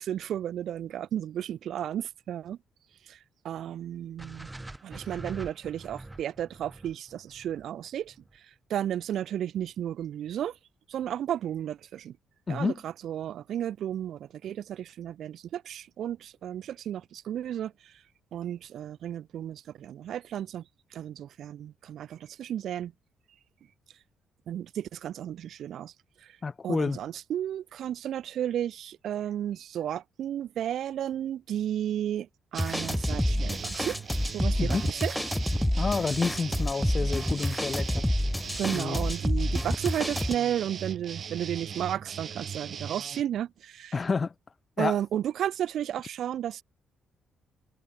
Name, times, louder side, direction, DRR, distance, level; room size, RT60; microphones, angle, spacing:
voice 1, 0.0-2.6 3.1-3.2 3.4-4.5 4.8-8.1 8.7-10.5 10.9-12.2 12.5-17.9 18.3-20.6 20.9-22.9 24.5-25.9 26.2-26.3 26.6-34.0 34.3-35.1 38.6-44.0 44.8-46.6, right 10 dB, 70° right, 1.5 m, -33 dB
sound 1, 4.2-8.4, right 2 dB, 15° right, 2.5 m, -44 dB
voice 2, 12.5-12.8 26.4-27.0 34.6-34.8 35.7-38.1 38.7-39.0 43.9-44.3 44.8-45.0, left 4 dB, 35° left, 1.3 m, -29 dB
sound 2, 32.5-43.2, right 7 dB, 50° right, 1.9 m, -39 dB
sound 3, 32.6-40.3, left 1 dB, 5° left, 0.3 m, -28 dB
cardioid pair, 90°, 0 cm